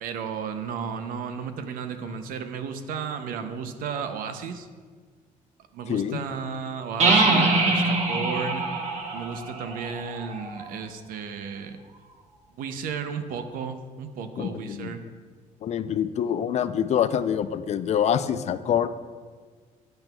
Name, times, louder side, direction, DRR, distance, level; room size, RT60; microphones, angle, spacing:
voice 1, 0.0-4.7 5.7-8.6 9.1-11.8 12.6-15.0, right 6 dB, 85° right, 8 dB, 0.5 m, -34 dB
voice 2, 5.9-6.2 14.4-14.9 15.6-18.9, left 9 dB, 50° left, 12 dB, 0.4 m, -25 dB
sound 1, 7.0-10.6, right 3 dB, 55° right, 1.1 m, -24 dB
9.0 x 7.8 x 2.2 m, 1.5 s
cardioid pair, 100°, 14 cm